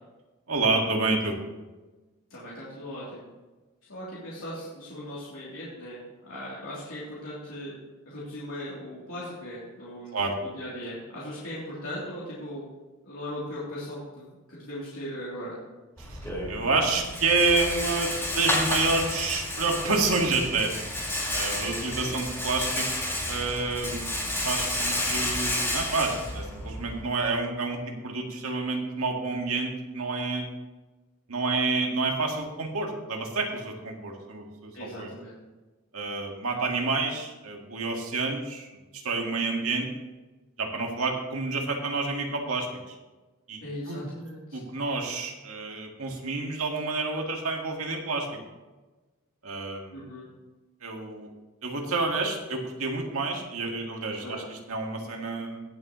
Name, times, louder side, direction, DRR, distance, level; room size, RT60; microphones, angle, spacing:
voice 1, 0.5-1.4 10.1-10.3 16.0-16.2 16.5-20.7 21.3-22.9 23.3-24.1 24.4-30.5 31.3-35.1 35.9-39.9 40.6-43.0 43.5-44.0 44.5-48.4 49.4-50.0 50.8-51.3 51.6-55.6, right 3 dB, 80° right, 1 dB, 1.9 m, -29 dB
voice 2, 2.3-3.2 3.9-7.7 8.0-10.2 10.4-12.6 13.0-15.6 22.0-22.2 34.7-35.3 36.5-36.8 43.6-44.6 49.9-50.2 54.2-54.4, equal, 70° left, -9 dB, 3.2 m, -38 dB
Rattle, 16.0-27.0, left 1 dB, 10° left, 3.9 m, -31 dB
18.5 x 7.2 x 3.1 m, 1.2 s
head